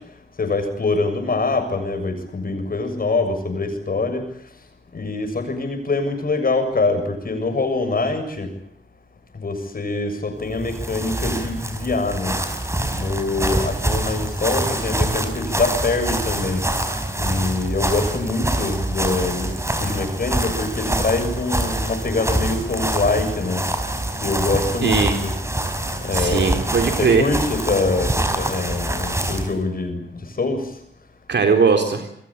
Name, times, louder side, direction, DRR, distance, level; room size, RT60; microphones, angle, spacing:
voice 1, 0.4-4.2 4.9-8.5 9.4-12.4 12.9-16.6 17.2-19.5 19.8-23.6 24.2-25.3 26.0-26.6 27.0-30.0 30.4-30.7, left 3 dB, 55° left, 7 dB, 7.2 m, -24 dB
sound 1, 10.5-29.5, right 1 dB, 15° right, 4.8 m, -25 dB
voice 2, 24.8-25.1 26.1-27.3 31.3-32.0, right 5 dB, 75° right, 5 dB, 3.8 m, -19 dB
28.5 x 22.0 x 8.8 m, 0.71 s
wide cardioid pair, 110°, 18 cm